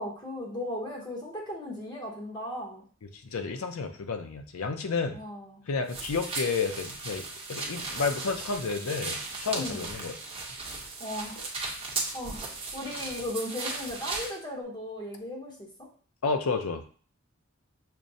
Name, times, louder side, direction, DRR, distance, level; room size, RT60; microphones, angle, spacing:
voice 1, 0.0-2.8 5.1-5.6 9.5-9.8 11.0-11.4 12.1-12.5 12.7-15.7, left 1 dB, 20° left, -2 dB, 0.8 m, -36 dB
voice 2, 3.3-5.2 5.7-10.2 16.2-16.8, left 4 dB, 80° left, 6 dB, 0.5 m, -31 dB
sound 1, 5.9-14.3, right 3 dB, 25° right, 0.8 m, -36 dB
6.0 x 2.0 x 2.6 m, 0.43 s
head